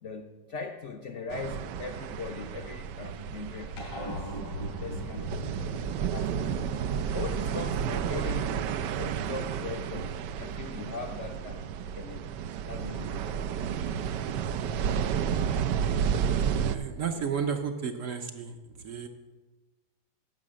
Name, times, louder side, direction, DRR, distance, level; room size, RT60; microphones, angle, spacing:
voice 1, 0.0-4.3 4.8-5.5 6.1-8.7 9.0-11.7 12.0-12.3 12.7-13.5 17.1-17.3, left 4 dB, 60° left, 4 dB, 0.8 m, -40 dB
sound 1, 1.3-16.8, right 8 dB, 85° right, 1.2 m, -31 dB
sound 2, 3.8-8.5, left 1 dB, 85° left, 3.4 m, -41 dB
voice 2, 16.6-19.1, right 6 dB, 60° right, 6 dB, 0.9 m, -33 dB
10.5 x 6.1 x 7.4 m, 1.2 s
omnidirectional pair, 1.8 m